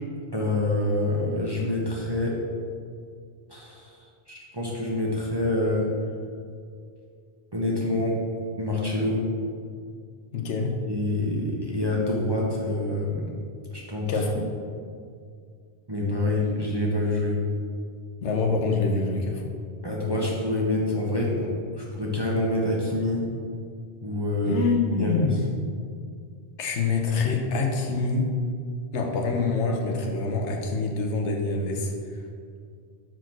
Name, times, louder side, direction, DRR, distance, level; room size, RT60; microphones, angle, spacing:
voice 1, 0.3-2.4 3.5-5.9 7.5-8.2 8.6-9.2 10.9-13.3 13.7-14.2 15.9-17.4 19.8-23.2 24.0-24.6 25.0-25.3, left 1 dB, 25° right, -4 dB, 1.0 m, -26 dB
voice 2, 10.3-10.7 14.1-14.5 18.2-19.4 24.4-25.5 26.6-28.3 28.9-32.2, left 3 dB, 90° left, 2 dB, 1.1 m, -26 dB
5.8 x 4.6 x 6.0 m, 2.2 s
omnidirectional pair, 1.1 m